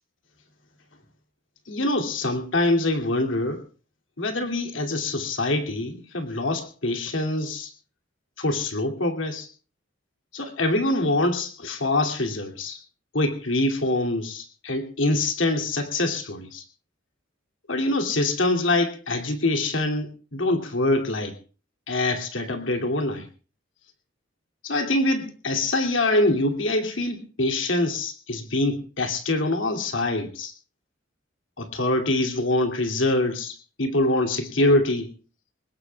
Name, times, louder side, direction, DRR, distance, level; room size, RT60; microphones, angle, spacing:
voice 1, 1.7-3.6 4.2-7.7 8.4-9.5 10.3-12.8 13.1-16.6 17.7-21.4 21.9-23.3 24.6-30.5 31.6-35.1, left 2 dB, 70° left, 4 dB, 2.8 m, -24 dB
24.0 x 20.5 x 2.4 m, 0.36 s
head